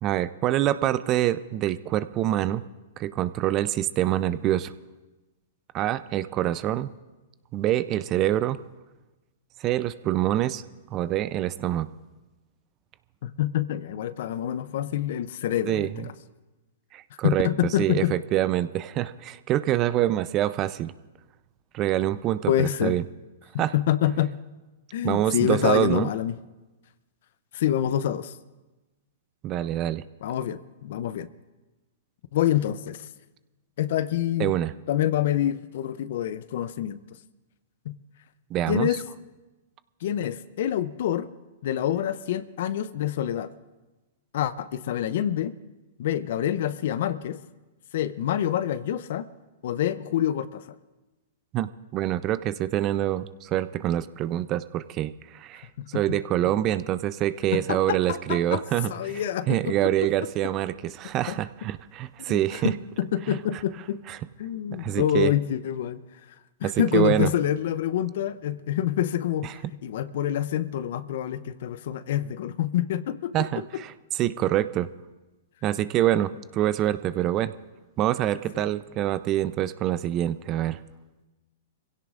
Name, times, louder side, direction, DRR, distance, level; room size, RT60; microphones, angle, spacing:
voice 1, 0.0-2.6 3.0-4.7 5.7-6.9 7.5-8.6 9.6-10.6 10.9-11.9 15.7-16.1 16.9-17.5 17.8-20.9 21.7-23.0 23.6-23.7 25.0-26.1 29.4-30.0 34.4-34.7 38.5-38.9 51.5-59.2 59.5-62.7 63.3-63.4 64.1-64.2 64.7-65.3 66.6-67.3 73.3-73.9 74.2-74.9 75.6-77.5 78.0-80.8, right 13 dB, 35° right, 15 dB, 0.6 m, -26 dB
voice 2, 13.2-16.1 17.2-18.1 22.5-23.0 23.7-24.3 24.9-26.4 27.5-28.4 30.2-31.3 32.3-33.1 33.8-34.5 34.9-37.0 37.8-37.9 38.7-39.0 40.0-41.3 41.6-43.5 44.3-45.5 46.0-47.4 47.9-49.3 49.6-50.7 55.8-56.2 57.5-59.9 61.3-61.4 62.2-64.0 64.4-66.0 66.6-69.5 69.8-73.8 78.5-78.7, left 11 dB, 60° left, 15 dB, 0.7 m, -27 dB
25.0 x 16.5 x 2.6 m, 1.1 s
hypercardioid pair, 115°, 0 cm